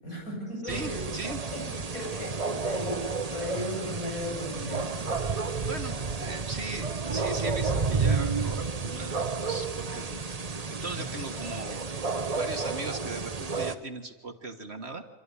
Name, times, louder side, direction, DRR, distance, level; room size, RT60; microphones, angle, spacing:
voice 1, 0.0-1.0 1.5-5.1 11.0-11.1, equal, 70° left, -1 dB, 8.6 m, -37 dB
voice 2, 0.6-1.4 5.6-9.2 9.5-10.2 10.5-11.8 12.3-15.0, right 3 dB, 45° right, 5 dB, 1.8 m, -39 dB
sound 1, 0.7-13.7, right 4 dB, 30° right, 0.9 m, -31 dB
26.0 x 13.5 x 9.8 m, 1.3 s
omnidirectional pair, 1.5 m